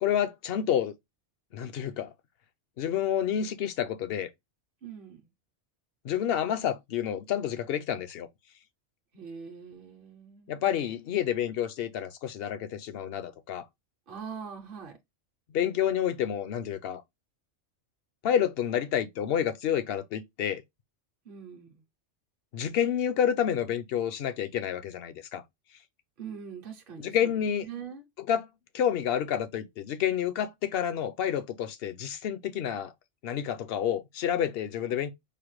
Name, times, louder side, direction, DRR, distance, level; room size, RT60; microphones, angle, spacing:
voice 1, 0.0-0.9 1.5-2.1 2.8-4.3 6.0-8.3 10.5-13.7 15.5-17.0 18.2-20.6 22.5-25.4 27.0-27.7 28.2-28.5 28.7-32.9 33.2-35.1, left 9 dB, 60° left, 0.8 m, -29 dB
voice 2, 4.8-5.2 9.1-10.7 14.1-15.0 21.2-21.8 26.2-27.3 27.6-28.0, right 6 dB, 55° right, 0.8 m, -42 dB
5.0 x 2.1 x 3.0 m
omnidirectional pair, 1.2 m